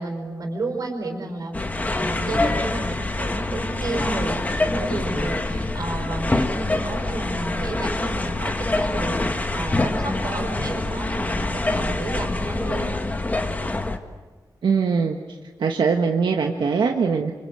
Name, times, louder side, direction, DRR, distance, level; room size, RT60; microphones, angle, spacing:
voice 1, 0.0-1.6 2.0-13.0, right 2 dB, 55° right, 4 dB, 5.2 m, -31 dB
sound 1, 1.5-14.0, left 2 dB, 20° left, 1.7 m, -25 dB
voice 2, 14.6-17.3, right 5 dB, 85° right, 3 dB, 1.5 m, -22 dB
28.0 x 26.5 x 7.8 m, 1.3 s
wide cardioid pair, 155°, 8 cm